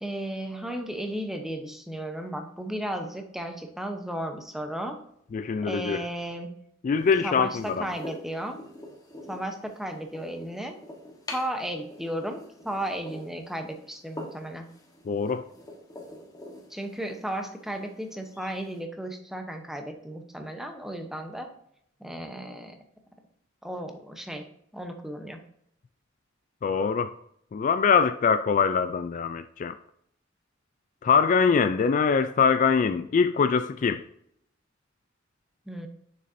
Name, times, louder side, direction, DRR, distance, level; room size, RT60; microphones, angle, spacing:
voice 1, 0.0-5.0 5.6-6.5 7.2-8.6 9.3-10.8 11.3-14.7 16.7-21.5 22.0-22.8 23.6-24.4 24.7-25.4 35.7-35.9, right 1 dB, ahead, 0.8 m, -34 dB
voice 2, 5.3-6.0 6.8-7.9 15.1-15.5 26.6-27.1 27.5-29.7 31.0-34.1, left 5 dB, 40° left, 0.3 m, -23 dB
sound 1, 7.0-18.8, left 1 dB, 20° left, 1.3 m, -46 dB
6.6 x 6.4 x 2.6 m
head